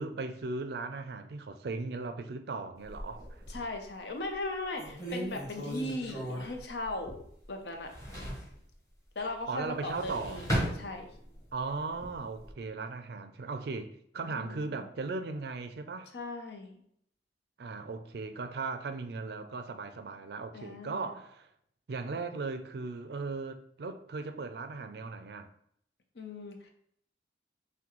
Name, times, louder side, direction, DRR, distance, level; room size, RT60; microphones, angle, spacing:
voice 1, 0.0-3.4 9.5-10.4 11.5-16.1 17.6-21.5 21.9-25.5, right 3 dB, 60° right, 0.4 m, -37 dB
sound 1, 2.8-3.8 4.3-4.4 4.8-7.4 7.7-8.5 9.7-11.4 11.9-12.5, equal, 15° left, 1.3 m, -36 dB
voice 2, 3.5-7.2 7.5-7.9 9.1-10.5 10.7-11.1 14.3-14.9 16.1-16.8 20.5-21.1 26.1-26.7, left 2 dB, 70° left, 0.7 m, -38 dB
5.9 x 2.2 x 3.0 m
head